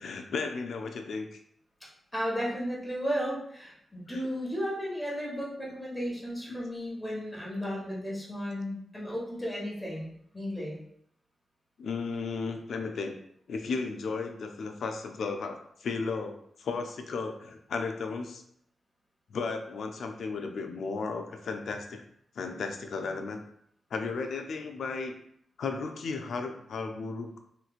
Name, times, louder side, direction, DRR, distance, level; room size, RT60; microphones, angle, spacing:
voice 1, 0.0-1.4 4.1-4.2 6.5-6.6 11.8-13.2 13.5-18.4 19.3-22.1 22.4-23.4 23.9-25.2 25.6-27.4, left 4 dB, 80° left, 5 dB, 0.4 m, -34 dB
voice 2, 1.8-10.8, equal, 10° left, -4 dB, 1.1 m, -34 dB
3.2 x 3.0 x 2.4 m, 0.69 s
cardioid pair, 80°, 0 cm